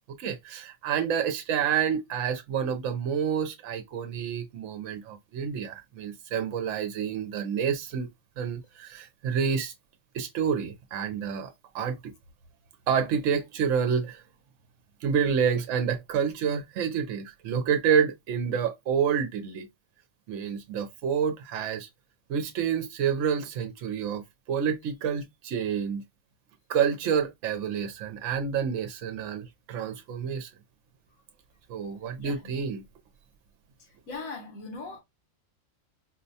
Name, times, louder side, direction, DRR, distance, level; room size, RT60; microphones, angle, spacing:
voice 1, 0.2-8.1 8.4-9.7 10.1-12.1 12.9-14.2 15.0-19.7 20.3-21.9 22.3-24.2 24.5-26.0 26.7-30.5 31.7-32.8, right 7 dB, 70° right, 0.9 m, -28 dB
voice 2, 32.2-32.5 34.1-35.0, left 3 dB, 90° left, 1.4 m, -39 dB
4.3 x 2.1 x 2.7 m
omnidirectional pair, 1.4 m